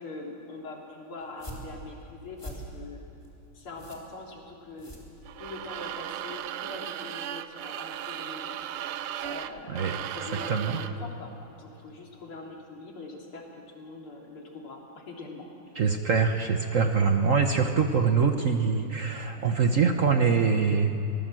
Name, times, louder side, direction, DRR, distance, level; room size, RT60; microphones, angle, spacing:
voice 1, 0.0-3.0 3.5-5.0 5.4-8.6 9.2-11.3 11.6-15.5, left 2 dB, 80° left, -1 dB, 3.9 m, -43 dB
sound 1, 1.2-5.7, right 1 dB, 15° left, 3.4 m, -44 dB
sound 2, 5.3-11.0, right 11 dB, 85° right, 1.6 m, -36 dB
voice 2, 10.5-10.8 15.8-20.9, right 5 dB, 50° right, 5 dB, 1.1 m, -24 dB
22.5 x 19.5 x 7.6 m, 3.0 s
omnidirectional pair, 2.3 m